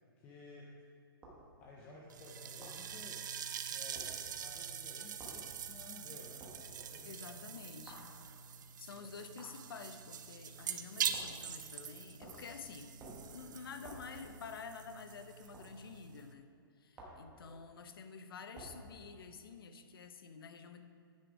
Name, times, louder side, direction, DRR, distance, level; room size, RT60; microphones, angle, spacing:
voice 1, 0.2-0.8 1.6-3.2 3.7-7.7 9.0-9.1 17.4-17.6, left 3 dB, 15° left, -2 dB, 0.4 m, -55 dB
sound 1, 1.2-1.4 2.6-2.8 3.9-4.1 5.2-5.4 6.4-6.6 7.9-8.1 9.4-9.6 11.1-11.4 12.2-12.5 13.0-13.3 13.8-14.1 15.5-15.7 16.9-17.3 18.5-18.8, right 2 dB, 10° right, 1.0 m, -52 dB
sound 2, 2.1-16.3, right 8 dB, 55° right, 0.5 m, -44 dB
voice 2, 7.0-8.2 8.8-12.9 13.3-16.5 16.8-20.8, left 5 dB, 70° left, 8 dB, 0.7 m, -50 dB
9.2 x 5.1 x 4.9 m, 2.5 s
hypercardioid pair, 170°, 12 cm